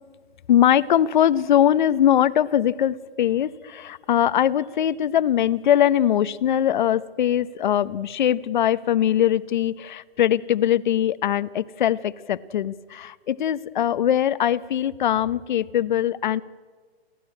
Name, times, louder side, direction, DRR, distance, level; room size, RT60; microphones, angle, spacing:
voice 1, 0.5-16.4, left 10 dB, 45° left, 18 dB, 0.8 m, -21 dB
29.0 x 12.0 x 9.7 m, 1.5 s
hypercardioid pair, 155°, 32 cm